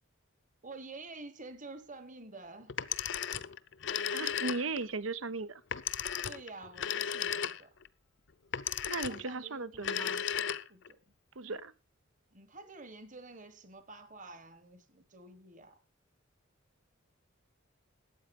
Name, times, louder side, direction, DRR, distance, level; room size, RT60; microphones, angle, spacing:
voice 1, 0.6-2.7 6.2-7.7 9.1-10.1 10.7-11.1 12.3-15.8, right 3 dB, 40° right, 1.4 m, -49 dB
Telephone, 2.7-4.9 5.7-7.9 8.5-9.3 9.7-10.9, left 8 dB, 65° left, 0.7 m, -35 dB
voice 2, 4.1-5.6 8.8-10.2 11.4-11.7, right 3 dB, 90° right, 0.8 m, -37 dB
12.5 x 8.4 x 5.3 m
head